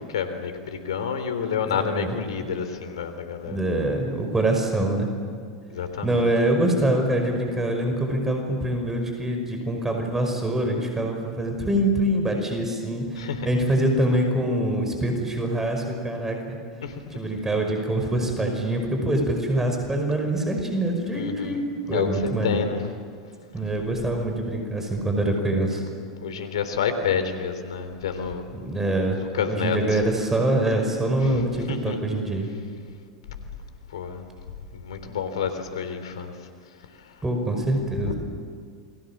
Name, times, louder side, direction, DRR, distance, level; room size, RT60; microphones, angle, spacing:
voice 1, 0.0-3.6 5.7-6.3 13.2-13.5 16.8-17.0 21.1-21.6 21.9-22.9 26.2-28.5 29.3-30.0 31.2-31.4 31.7-32.0 33.9-34.2 34.7-36.3 37.0-37.1 37.9-38.1, left 7 dB, 75° left, 9 dB, 3.6 m, -29 dB
voice 2, 1.7-2.2 3.5-5.1 6.0-16.6 17.2-22.6 23.5-25.8 28.5-29.2 29.5-32.5 37.2-38.1, right 1 dB, 15° right, 3 dB, 5.6 m, -24 dB
29.0 x 22.5 x 7.5 m, 2.1 s
hypercardioid pair, 90°, 3 cm